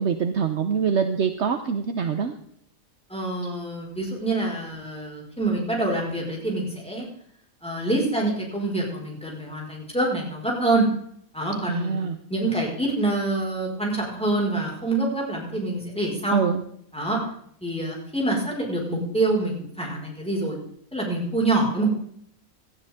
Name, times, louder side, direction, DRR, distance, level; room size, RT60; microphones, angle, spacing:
voice 1, 0.0-2.3 11.7-12.2 16.3-16.6, right 6 dB, 55° right, 7 dB, 1.1 m, -24 dB
voice 2, 3.1-7.1 7.6-10.9 11.3-12.0 12.3-16.4 16.9-17.2 17.6-20.6 20.9-21.9, right 2 dB, 5° left, -3 dB, 5.0 m, -26 dB
17.5 x 13.0 x 3.6 m, 0.66 s
omnidirectional pair, 1.5 m